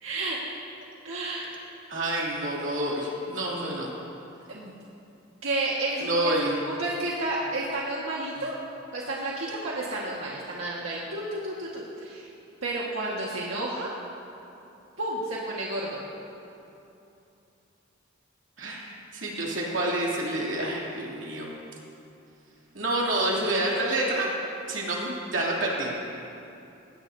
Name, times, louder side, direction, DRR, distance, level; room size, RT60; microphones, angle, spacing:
voice 1, 0.0-0.4 1.0-1.5 4.5-4.7 5.4-6.3 6.7-8.6 8.9-12.3 12.6-13.9 15.0-16.0, right 2 dB, 90° right, -5 dB, 1.7 m, -31 dB
voice 2, 1.9-3.9 6.0-6.6 18.6-18.8 19.1-21.5 22.7-24.3 24.7-25.9, right 1 dB, 65° right, -4 dB, 3.0 m, -28 dB
20.5 x 17.5 x 2.8 m, 2.8 s
head